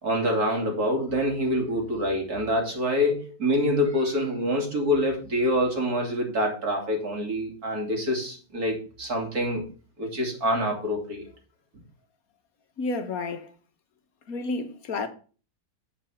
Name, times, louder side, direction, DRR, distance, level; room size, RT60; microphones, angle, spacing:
voice 1, 0.0-9.6 10.0-11.3, equal, 50° right, 3.3 m, -26 dB
voice 2, 12.8-13.5 14.3-15.1, left 3 dB, 55° left, 1.5 m, -30 dB
8.5 x 5.4 x 7.2 m
omnidirectional pair, 2.0 m